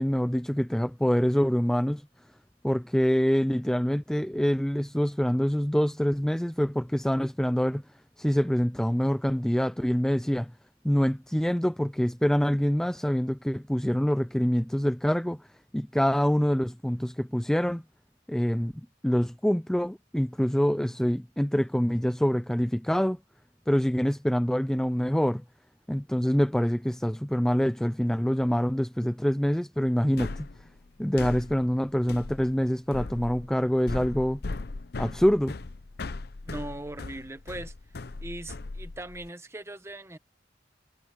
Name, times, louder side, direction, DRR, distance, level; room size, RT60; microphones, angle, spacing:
voice 1, 0.0-2.0 2.6-7.8 8.2-10.5 10.8-15.4 15.7-17.8 18.3-23.2 23.7-25.4 25.9-30.5 31.0-34.4 35.0-35.6, equal, 5° left, 0.4 m, -25 dB
sound 1, 30.2-39.3, left 3 dB, 60° left, 0.7 m, -38 dB
voice 2, 36.4-37.7 38.2-40.2, right 1 dB, 15° right, 1.3 m, -39 dB
head